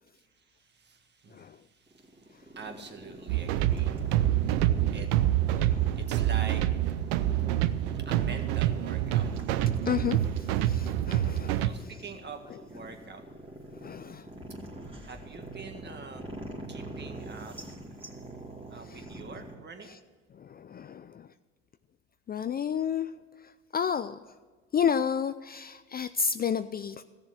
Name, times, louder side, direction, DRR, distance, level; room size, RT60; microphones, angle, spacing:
voice 1, 0.1-9.6 11.6-13.2 15.0-16.2 16.7-17.8 18.7-20.0, right 4 dB, 35° right, 5 dB, 1.8 m, -46 dB
sound 1, 1.9-19.6, right 1 dB, 20° right, 2.6 m, -44 dB
sound 2, 3.3-11.7, right 12 dB, 85° right, 0.6 m, -27 dB
voice 2, 9.9-11.6 13.7-14.3 18.9-19.0 20.3-21.3 22.3-23.1 23.7-24.2 24.7-27.0, left 7 dB, 30° left, 12 dB, 0.4 m, -31 dB
14.5 x 7.0 x 8.0 m, 1.3 s
supercardioid pair, 70°, 31 cm